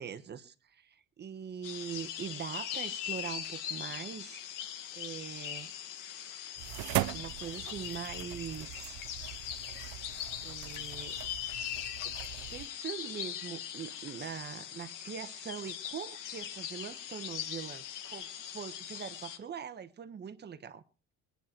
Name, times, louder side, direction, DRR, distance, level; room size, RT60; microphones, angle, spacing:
voice 1, 0.0-5.7 6.9-9.0 10.4-11.2 12.0-12.1 12.5-20.8, right 7 dB, 30° right, 1.1 m, -42 dB
sound 1, 1.6-19.4, left 10 dB, 75° left, 1.8 m, -41 dB
sound 2, 6.6-12.7, right 16 dB, 85° right, 0.7 m, -40 dB
22.0 x 9.5 x 4.5 m
cardioid pair, 140°, 32 cm